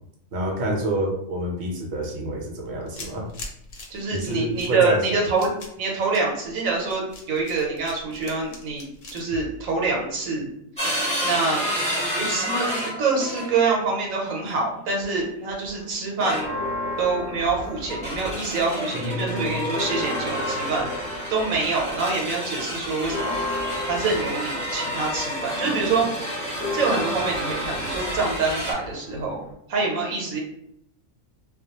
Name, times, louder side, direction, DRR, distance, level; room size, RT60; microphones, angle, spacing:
voice 1, 0.3-3.3 4.1-5.2 18.9-19.6, right 1 dB, 65° right, 0 dB, 0.8 m, -28 dB
sound 1, 2.6-10.4, left 2 dB, 75° left, 1.0 m, -42 dB
voice 2, 3.9-5.5 5.8-8.8 9.1-10.5 11.2-11.6 12.1-16.5 17.0-20.9 21.3-26.1 26.7-29.4 29.7-30.4, right 4 dB, 85° right, -2 dB, 1.1 m, -25 dB
sound 2, 10.8-13.7 14.9-15.2 16.2-16.8 17.8-28.7, equal, 5° left, 0.7 m, -30 dB
Church bell, 16.3-18.7 19.0-19.1 19.5-29.5, left 1 dB, 50° left, 0.7 m, -34 dB
2.2 x 2.2 x 2.8 m, 0.76 s
omnidirectional pair, 1.4 m